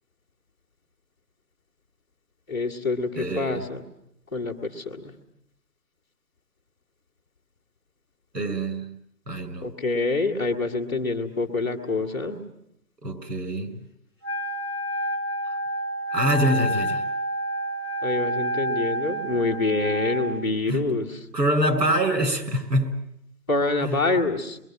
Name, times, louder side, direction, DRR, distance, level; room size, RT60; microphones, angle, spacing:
voice 1, 2.5-3.8 4.3-5.1 9.6-12.4 18.0-21.2 23.5-24.6, left 3 dB, 15° left, -8 dB, 1.3 m, -26 dB
voice 2, 3.2-3.6 8.3-9.0 9.3-9.7 13.0-13.8 15.4-15.5 16.1-17.0 20.7-20.9 21.3-23.0 23.8-24.0, right 1 dB, 80° right, 5 dB, 6.7 m, -25 dB
Wind instrument woodwind instrument, 14.2-20.4, right 1 dB, 15° right, 1.3 m, -28 dB
26.5 x 22.5 x 8.9 m, 0.77 s
figure-of-eight pair, 170°, 49 cm